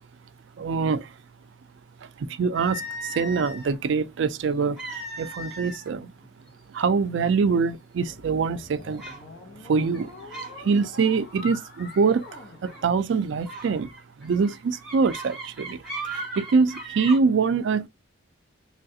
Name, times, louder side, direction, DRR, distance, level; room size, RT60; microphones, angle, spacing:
voice 1, 0.6-1.1 2.2-6.1 6.7-9.0 9.6-13.9 14.2-15.8 16.1-17.9, right 5 dB, 60° right, 0.3 m, -24 dB
sound 1, 2.6-3.8 4.8-5.9 6.2-6.5 7.2-7.3 7.8-8.2 9.0-9.2 9.8-10.6 10.9-11.2 12.7-12.9 13.5-17.2, right 2 dB, 5° right, 0.9 m, -37 dB
sound 2, 8.1-13.5, left 3 dB, 50° left, 0.8 m, -45 dB
3.2 x 2.4 x 2.7 m
head